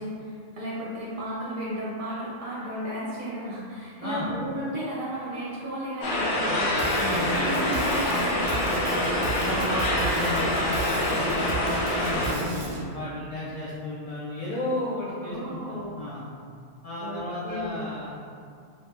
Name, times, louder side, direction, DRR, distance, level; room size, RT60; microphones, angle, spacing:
voice 1, 0.0-6.8 7.3-8.6 15.2-15.9 17.0-17.9, right 1 dB, 55° right, -7 dB, 0.7 m, -34 dB
sound 1, 6.0-12.3, left 1 dB, 75° left, 0.9 m, -26 dB
Drum kit / Drum, 6.8-12.8, right 2 dB, 75° right, 0.3 m, -32 dB
voice 2, 6.9-7.3 9.4-11.4 12.0-16.2 16.8-18.1, left 2 dB, 55° left, -10 dB, 0.4 m, -33 dB
2.7 x 2.1 x 3.3 m, 2.3 s
omnidirectional pair, 1.2 m